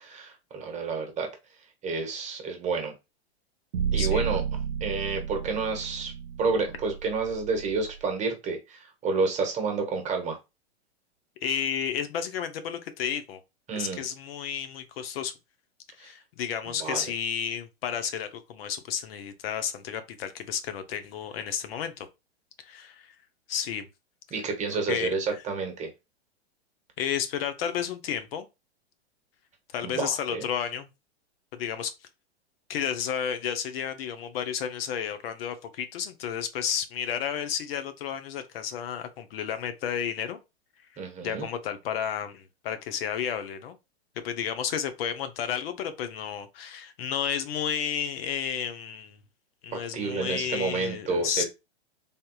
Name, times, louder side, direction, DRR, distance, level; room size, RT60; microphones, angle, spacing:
voice 1, 0.0-1.3 1.8-2.9 3.9-4.4 4.8-6.1 6.4-10.4 13.7-14.0 16.0-16.1 16.8-17.0 24.3-25.9 29.8-30.5 41.0-41.5 49.7-51.4, right 4 dB, 20° right, 1.0 m, -30 dB
sound 1, 3.7-7.9, right 7 dB, 90° right, 0.6 m, -32 dB
voice 2, 11.4-13.4 13.7-15.3 16.0-22.1 22.6-23.1 23.5-23.9 24.9-25.1 27.0-28.5 29.7-30.9 31.6-31.9 32.7-40.4 41.2-43.8 44.2-49.2 49.6-51.4, left 8 dB, 60° left, 0.6 m, -32 dB
3.5 x 2.6 x 2.3 m
hypercardioid pair, 115°, 32 cm